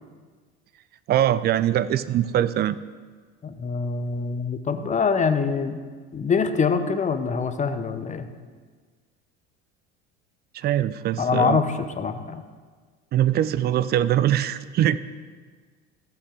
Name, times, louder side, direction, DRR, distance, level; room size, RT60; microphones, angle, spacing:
voice 1, 1.1-2.8 10.5-11.6 13.1-15.0, right 11 dB, 30° right, 16 dB, 0.4 m, -22 dB
voice 2, 3.4-5.8 6.1-8.3 11.2-12.4, left 5 dB, 20° left, 9 dB, 0.8 m, -24 dB
14.0 x 5.7 x 3.8 m, 1.5 s
hypercardioid pair, 70°, 34 cm